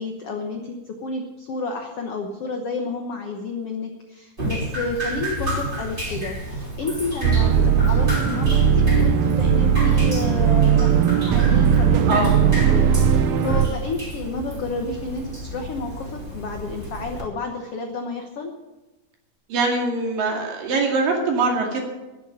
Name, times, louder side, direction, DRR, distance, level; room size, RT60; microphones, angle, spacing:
voice 1, 0.0-11.0 11.3-18.5, left 3 dB, 75° left, 3 dB, 1.3 m, -31 dB
Drip, 4.4-17.2, equal, 15° right, 3.1 m, -32 dB
sound 1, 7.2-13.7, right 7 dB, 85° right, 1.5 m, -18 dB
voice 2, 19.5-21.8, right 3 dB, 65° right, 1 dB, 4.0 m, -22 dB
10.5 x 10.5 x 8.7 m, 1.1 s
omnidirectional pair, 4.4 m